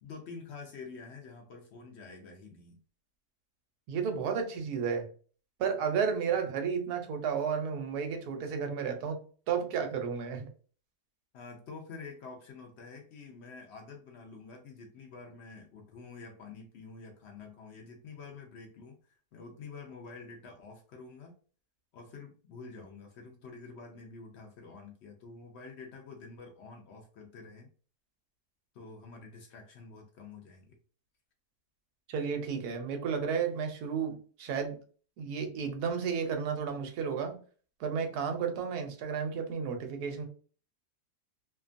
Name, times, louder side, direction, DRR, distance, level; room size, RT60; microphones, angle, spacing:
voice 1, 0.0-2.8 11.3-21.4 21.9-27.7 28.7-30.8, left 4 dB, 90° left, 1 dB, 0.6 m, -48 dB
voice 2, 3.9-5.1 5.6-9.2 9.5-10.5 32.1-34.8 35.2-37.4 37.8-40.3, right 6 dB, 75° right, 5 dB, 1.1 m, -32 dB
2.7 x 2.2 x 2.4 m, 0.41 s
omnidirectional pair, 1.7 m